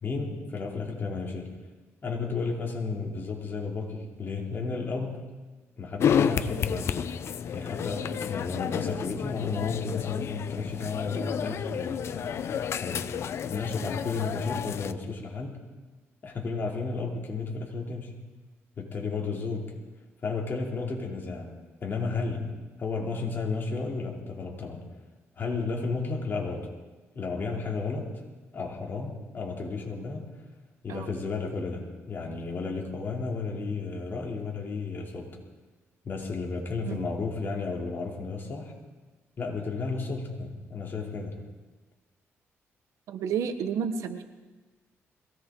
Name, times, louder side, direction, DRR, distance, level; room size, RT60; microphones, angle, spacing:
voice 1, 0.0-1.6 2.0-5.3 5.8-7.1 7.5-13.1 13.4-15.6 16.2-18.1 18.8-19.7 20.2-21.5 21.8-22.5 22.8-24.8 25.4-26.7 27.1-28.1 28.5-30.3 30.8-35.4 36.0-38.7 39.4-41.4, left 4 dB, 40° left, -1 dB, 2.9 m, -33 dB
sound 1, 6.0-14.9, left 8 dB, 60° left, 0.6 m, -31 dB
voice 2, 43.1-44.2, right 7 dB, 85° right, 9 dB, 1.0 m, -31 dB
22.0 x 17.0 x 3.8 m, 1.2 s
cardioid pair, 115°, 5 cm